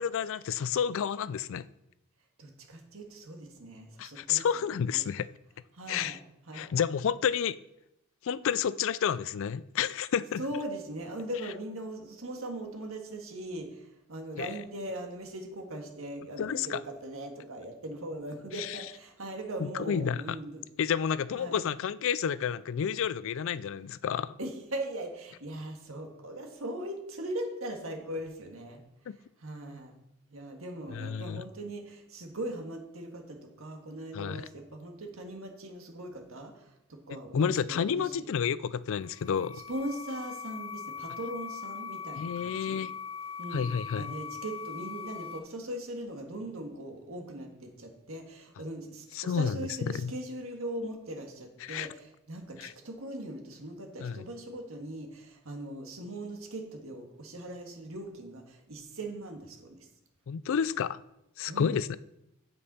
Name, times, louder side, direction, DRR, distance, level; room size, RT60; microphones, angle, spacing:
voice 1, 0.0-1.7 4.0-5.3 5.9-6.2 6.5-7.6 8.2-10.4 14.4-14.5 16.4-16.8 18.6-18.8 19.6-20.4 20.8-24.3 29.1-29.2 30.9-31.4 34.1-34.5 37.3-39.6 42.2-42.9 43.5-44.1 49.1-49.6 49.9-50.1 51.6-51.9 52.6-52.7 54.0-54.2 60.3-61.0 61.4-62.0, left 7 dB, 65° left, 17 dB, 0.4 m, -30 dB
voice 2, 2.4-5.0 5.7-6.2 6.5-6.7 10.4-20.6 21.3-21.7 24.4-28.8 29.4-29.9 30.3-38.2 39.7-42.8 43.4-43.6 44.0-59.8 61.5-61.7, right 1 dB, 70° right, 3 dB, 1.7 m, -40 dB
sound 1, 38.9-45.4, left 6 dB, 30° left, 0.8 m, -41 dB
15.5 x 5.4 x 4.2 m, 0.84 s
head